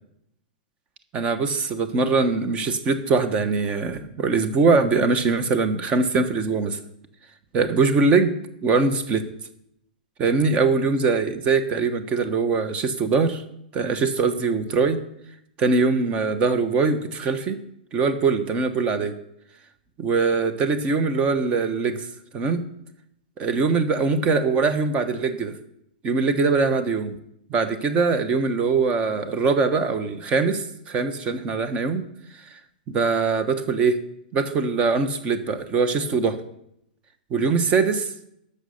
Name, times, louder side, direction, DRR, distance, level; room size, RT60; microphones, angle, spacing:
voice 1, 1.1-6.8 7.5-8.3 8.6-9.3 10.2-13.4 13.7-15.0 15.6-17.6 17.9-19.2 20.0-22.1 22.3-22.6 23.4-25.6 26.0-27.2 27.5-32.1 32.3-32.6 32.9-34.0 34.3-36.4 37.3-38.1, right 4 dB, 25° right, 10 dB, 1.1 m, -22 dB
11.0 x 6.7 x 6.6 m, 0.77 s
hypercardioid pair, 150°, 5 cm